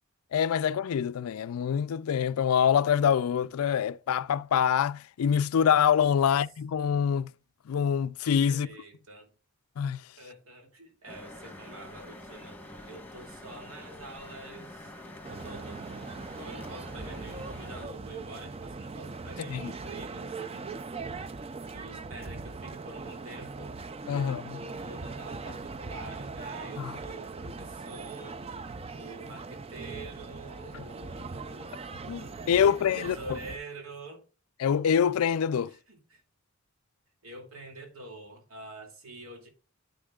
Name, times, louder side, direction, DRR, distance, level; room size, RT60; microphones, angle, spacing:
voice 1, 0.3-7.3 7.7-8.7 9.8-10.0 19.5-19.7 24.1-24.6 26.8-26.9 32.1-33.2 34.6-35.7, left 8 dB, 85° left, 0.4 m, -25 dB
voice 2, 8.5-9.3 10.2-15.8 16.4-20.7 21.6-23.8 24.1-28.4 28.9-34.2 35.7-36.2 37.2-39.5, right 2 dB, 80° right, 2.5 m, -46 dB
sound 1, 11.1-17.9, left 1 dB, 10° left, 1.3 m, -46 dB
sound 2, 15.2-33.6, right 4 dB, 30° right, 0.4 m, -40 dB
10.0 x 8.3 x 2.4 m
head